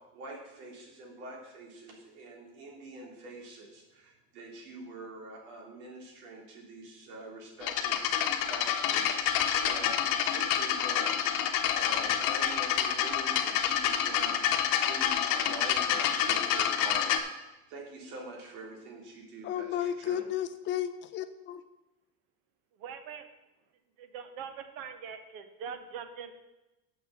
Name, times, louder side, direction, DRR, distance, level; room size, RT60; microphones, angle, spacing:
voice 1, 0.1-17.2 17.7-20.3, right 2 dB, 90° right, -1 dB, 3.1 m, -45 dB
sound 1, 7.6-17.2, left 9 dB, 50° left, 1.0 m, -28 dB
voice 2, 19.4-21.6, left 10 dB, 30° left, 9 dB, 0.4 m, -33 dB
voice 3, 22.8-23.3 24.0-26.3, right 7 dB, 55° right, 9 dB, 1.1 m, -42 dB
7.0 x 6.3 x 6.9 m, 0.98 s
cardioid pair, 155°, 42 cm